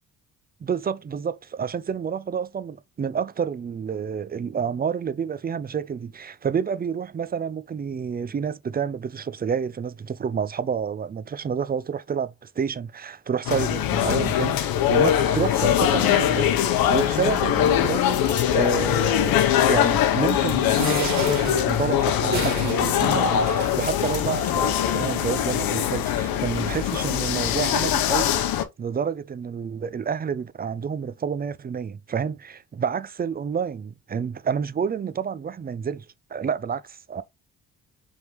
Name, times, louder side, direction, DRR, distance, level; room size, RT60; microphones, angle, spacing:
voice 1, 0.6-18.2 18.5-19.4 19.7-36.1 36.3-37.2, right 7 dB, 25° right, 0.5 m, -29 dB
sound 1, 13.5-28.6, left 10 dB, 85° left, 0.8 m, -22 dB
sound 2, 17.9-18.6 19.8-24.7, left 6 dB, 40° left, 1.3 m, -42 dB
sound 3, 20.6-25.2 25.8-25.9 26.2-26.3, right 4 dB, 50° right, 2.0 m, -34 dB
4.9 x 3.6 x 3.0 m
supercardioid pair, 70°, 35 cm